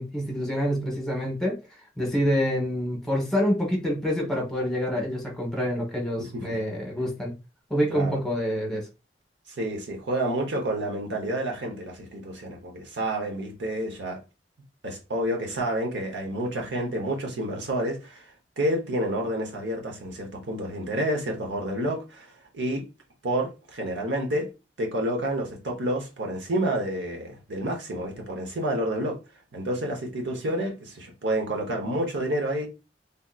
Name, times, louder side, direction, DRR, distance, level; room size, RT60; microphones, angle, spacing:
voice 1, 0.0-1.5 2.0-7.3 7.7-8.9, equal, 5° left, 1.0 m, -27 dB
voice 2, 6.2-6.6 7.9-8.2 9.6-14.2 14.8-22.8 23.2-24.5 24.8-29.2 29.5-32.7, right 1 dB, 80° right, 0.9 m, -29 dB
3.5 x 2.8 x 2.3 m
head